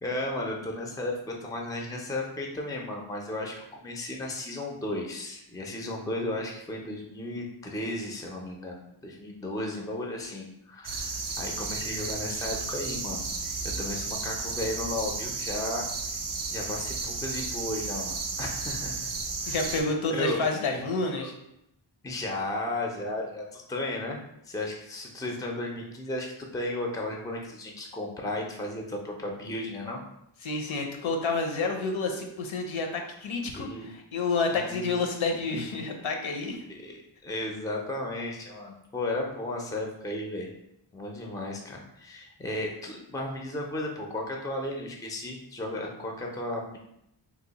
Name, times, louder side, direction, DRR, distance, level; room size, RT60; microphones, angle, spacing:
voice 1, 0.0-16.2 16.5-19.1 19.4-20.4 21.2-21.3 22.0-24.2 24.4-30.0 33.5-33.9 34.5-34.9 36.7-40.5 40.9-46.8, left 1 dB, 10° left, 0 dB, 0.4 m, -34 dB
sound 1, 10.8-19.8, right 4 dB, 45° right, 0.5 m, -33 dB
voice 2, 19.5-21.3 30.4-36.6, left 3 dB, 75° left, 2 dB, 0.7 m, -29 dB
2.9 x 2.0 x 3.9 m, 0.79 s
wide cardioid pair, 110°, 48 cm